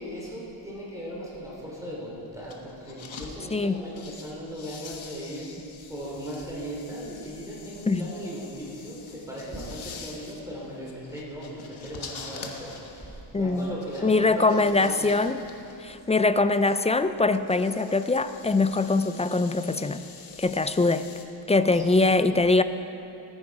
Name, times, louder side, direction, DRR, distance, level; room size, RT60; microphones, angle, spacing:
voice 1, 0.0-5.5 5.9-15.2 16.0-16.1 20.4-20.5 21.7-21.8, equal, 5° right, -6 dB, 3.3 m, -38 dB
sound 1, 2.4-3.3 3.7-21.3, left 5 dB, 75° left, 1.4 m, -46 dB
voice 2, 13.3-13.7 14.0-15.4 15.8-20.0 20.4-21.1 21.5-22.6, left 3 dB, 15° left, 11 dB, 0.3 m, -22 dB
18.0 x 9.7 x 4.8 m, 2.9 s
wide cardioid pair, 95°, 48 cm